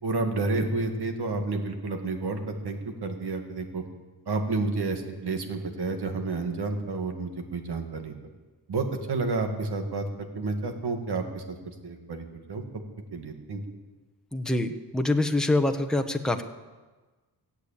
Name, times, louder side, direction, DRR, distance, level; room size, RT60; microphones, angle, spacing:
voice 1, 0.0-3.8 4.3-8.1 8.7-11.6 11.8-12.6 13.1-13.6, right 3 dB, 70° right, 5 dB, 2.1 m, -30 dB
voice 2, 14.3-14.7 14.9-16.4, left 2 dB, ahead, 5 dB, 0.9 m, -25 dB
17.0 x 8.3 x 8.6 m, 1.3 s
wide cardioid pair, 115°, 40 cm